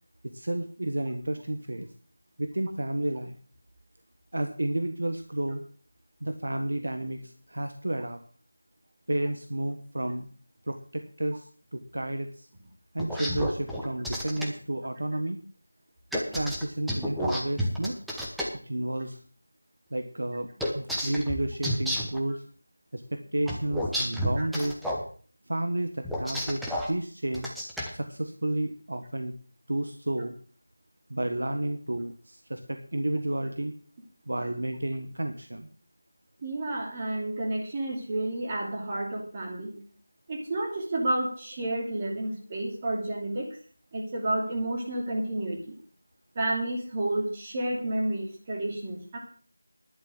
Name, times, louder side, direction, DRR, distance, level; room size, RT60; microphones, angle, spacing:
voice 1, 0.2-1.9 2.4-3.4 4.3-5.6 6.2-8.2 9.1-10.3 10.7-12.5 12.9-15.4 16.1-17.9 18.6-19.2 19.9-22.4 22.9-24.8 25.5-27.5 27.9-29.3 29.7-30.3 31.1-33.7 34.3-35.7, right 1 dB, 70° right, 7 dB, 1.4 m, -31 dB
sound 1, 13.0-14.5 16.1-18.5 20.6-22.2 23.5-25.0 26.0-26.9 27.3-27.9, equal, ahead, 1.0 m, -30 dB
voice 2, 36.4-39.8 40.3-43.5 43.9-45.8 46.3-49.2, right 1 dB, 25° right, 0 dB, 2.8 m, -30 dB
11.5 x 6.9 x 7.8 m, 0.43 s
figure-of-eight pair, 170°, 0 cm